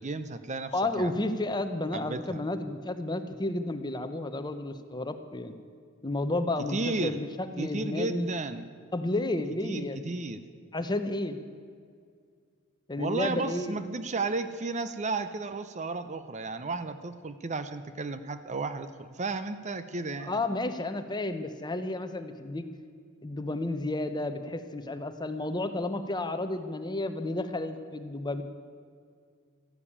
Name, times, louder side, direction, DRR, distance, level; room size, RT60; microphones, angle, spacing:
voice 1, 0.0-1.1 1.9-2.4 6.7-7.2 7.6-8.7 9.6-10.4 13.0-20.3, right 3 dB, 35° right, 11 dB, 0.6 m, -33 dB
voice 2, 0.7-5.6 6.0-8.3 8.9-10.2 10.7-11.4 12.9-13.8 20.2-22.7 23.2-28.4, left 2 dB, 20° left, 9 dB, 0.8 m, -32 dB
13.5 x 12.0 x 8.7 m, 2.1 s
head